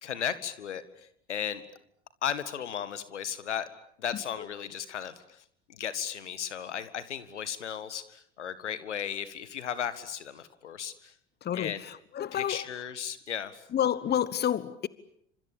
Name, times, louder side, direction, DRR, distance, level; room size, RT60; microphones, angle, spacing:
voice 1, 0.0-1.6 2.2-3.7 4.0-5.4 5.7-11.1 11.5-11.8 12.3-13.6, left 9 dB, 80° left, 1.9 m, -35 dB
voice 2, 11.4-12.7 13.7-14.9, left 10 dB, 30° left, 1.2 m, -30 dB
29.0 x 26.5 x 7.3 m
figure-of-eight pair, 75°, 35 cm